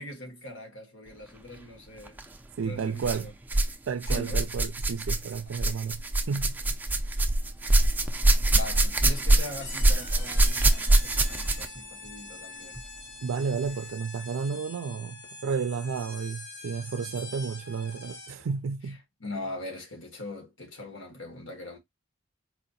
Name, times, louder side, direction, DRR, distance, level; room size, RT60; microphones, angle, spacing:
voice 1, 0.0-2.2 2.6-3.3 4.1-4.5 8.5-12.8 19.2-21.8, left 1 dB, 70° left, 1.5 m, -41 dB
sound 1, 2.1-2.3 3.0-3.8 4.0-11.8 12.8-12.9 13.6-13.7, right 2 dB, 10° right, 0.4 m, -24 dB
voice 2, 2.6-3.3 3.9-6.8 13.2-19.0, right 5 dB, 80° right, 0.4 m, -32 dB
sound 2, 9.6-18.5, left 3 dB, 55° left, 1.2 m, -44 dB
4.2 x 2.8 x 2.7 m
head